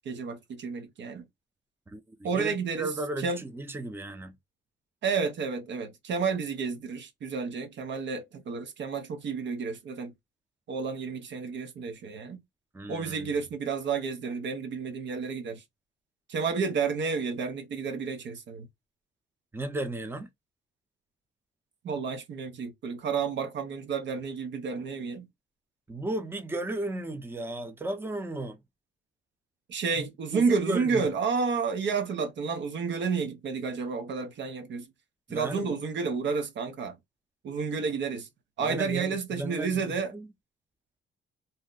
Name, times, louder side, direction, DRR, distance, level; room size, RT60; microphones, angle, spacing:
voice 1, 0.0-1.2 2.2-2.9 3.2-3.4 5.0-10.1 10.7-12.4 12.9-15.6 16.3-18.7 21.8-25.3 29.7-34.9 35.3-37.0 37.4-38.3 38.6-40.1, right 5 dB, 65° right, 0.7 m, -31 dB
voice 2, 1.9-4.3 12.7-13.3 19.5-20.3 25.9-28.6 30.0-30.1 30.3-31.0 35.3-35.8 38.6-40.3, right 2 dB, 10° right, 0.6 m, -35 dB
2.7 x 2.1 x 3.7 m
cardioid pair, 90°, 20 cm